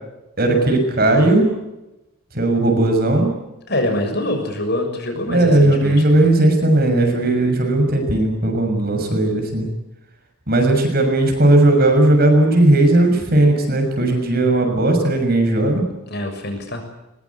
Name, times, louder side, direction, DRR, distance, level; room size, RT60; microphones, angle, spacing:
voice 1, 0.4-1.5 2.3-3.3 5.3-9.7 10.5-15.8, right 1 dB, 45° right, 4 dB, 6.7 m, -16 dB
voice 2, 3.7-6.2 16.1-16.8, left 1 dB, 45° left, 5 dB, 6.6 m, -24 dB
23.0 x 22.0 x 8.7 m, 0.96 s
head